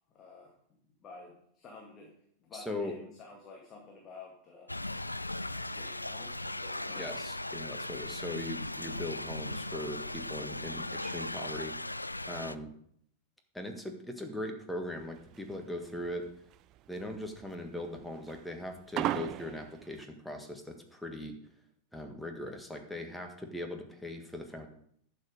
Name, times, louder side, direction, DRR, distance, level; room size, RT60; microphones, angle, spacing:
voice 1, 0.1-0.5 1.0-2.1 2.4-4.7 5.5-7.3, left 4 dB, 30° left, -1 dB, 2.1 m, -51 dB
voice 2, 2.5-2.9 6.9-11.8 12.3-12.7 13.5-16.3 16.9-21.3 21.9-24.7, left 1 dB, 5° left, 4 dB, 1.6 m, -40 dB
Thunder / Rain, 4.7-12.6, left 2 dB, 85° left, 0.3 m, -38 dB
sound 1, 15.0-20.0, right 13 dB, 35° right, 0.3 m, -37 dB
11.0 x 6.8 x 4.9 m, 0.67 s
figure-of-eight pair, 90°, 0 cm